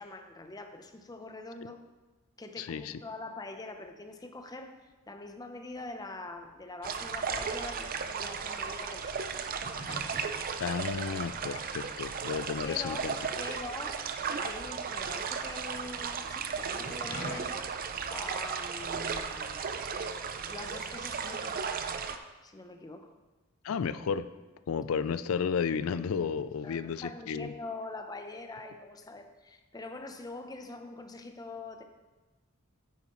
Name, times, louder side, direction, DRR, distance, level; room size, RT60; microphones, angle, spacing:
voice 1, 0.0-1.8 2.4-4.8 5.1-9.3 12.6-13.1 13.4-14.1 14.4-17.6 18.1-19.9 20.5-21.7 22.4-23.1 26.6-31.8, left 2 dB, 20° left, 6 dB, 0.6 m, -44 dB
voice 2, 2.6-3.0 10.6-13.2 23.6-24.3 24.7-27.5, left 6 dB, 90° left, 14 dB, 0.4 m, -32 dB
sound 1, 4.6-5.3 5.5-13.9 14.2-15.9 16.5-17.3, equal, 60° left, 2.7 m, -48 dB
sound 2, 6.8-22.2, right 6 dB, 45° right, 0.5 m, -35 dB
9.3 x 9.0 x 3.0 m, 1.2 s
head